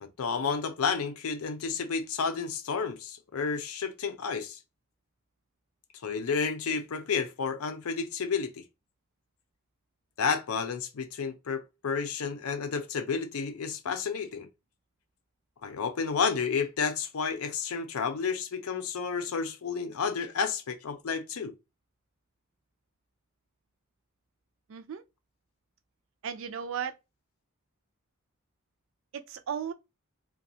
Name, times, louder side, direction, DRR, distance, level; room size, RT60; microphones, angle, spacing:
voice 1, 0.0-4.6 6.0-8.6 10.2-14.5 15.6-21.5, left 5 dB, 90° left, 0.5 m, -31 dB
voice 2, 24.7-25.0 26.2-27.0 29.1-29.7, right 7 dB, 65° right, 0.4 m, -35 dB
2.4 x 2.2 x 2.7 m
head